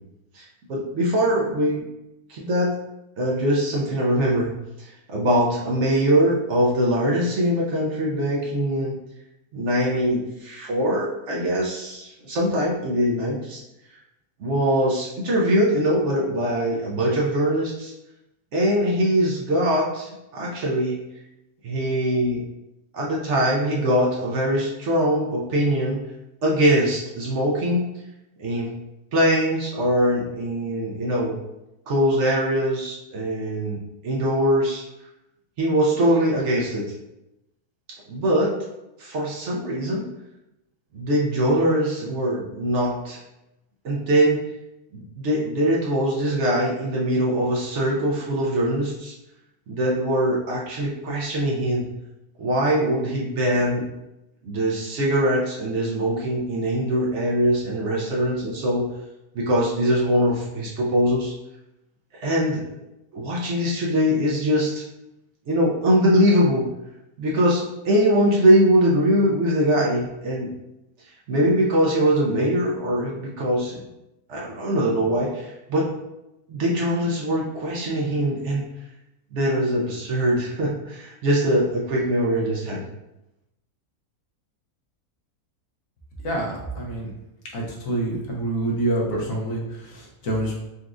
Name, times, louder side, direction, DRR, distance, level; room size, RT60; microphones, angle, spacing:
voice 1, 0.3-1.8 2.3-2.7 3.2-4.5 4.8-9.0 9.5-13.6 14.4-17.9 18.5-21.0 21.6-22.4 22.9-26.0 26.4-27.8 28.4-28.7 29.1-31.4 31.9-33.8 34.0-34.8 35.6-36.9 38.1-38.5 39.0-40.1 40.9-43.2 43.8-44.4 44.9-49.1 49.7-51.9 52.4-53.8 54.4-58.9 59.3-61.3 62.1-62.8 63.1-64.8 65.5-66.7 67.2-70.5 71.3-73.8 74.3-75.9 76.5-78.6 79.3-82.8, equal, 65° right, -3 dB, 0.8 m, -22 dB
voice 2, 86.2-87.1 87.5-90.5, right 1 dB, 65° left, -2 dB, 1.2 m, -27 dB
4.0 x 2.3 x 2.4 m, 0.92 s
omnidirectional pair, 1.6 m